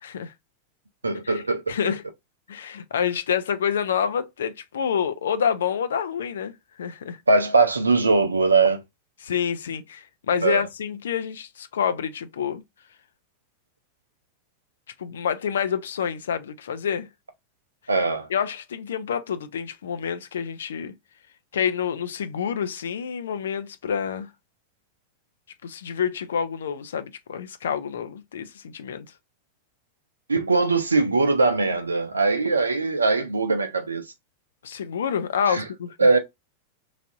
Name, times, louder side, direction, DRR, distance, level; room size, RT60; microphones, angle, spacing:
voice 1, 0.0-0.3 1.2-2.0 2.5-6.5 6.8-7.2 9.2-12.6 15.0-17.1 18.3-20.9 21.5-24.3 25.6-29.1 34.6-36.1, left 7 dB, 65° left, 0.4 m, -28 dB
voice 2, 1.0-1.7 7.3-8.8 10.4-10.6 17.9-18.3 30.3-34.0 35.5-35.6 36.0-36.2, right 3 dB, 75° right, 0.5 m, -21 dB
3.2 x 2.5 x 2.5 m
figure-of-eight pair, 90°, 0 cm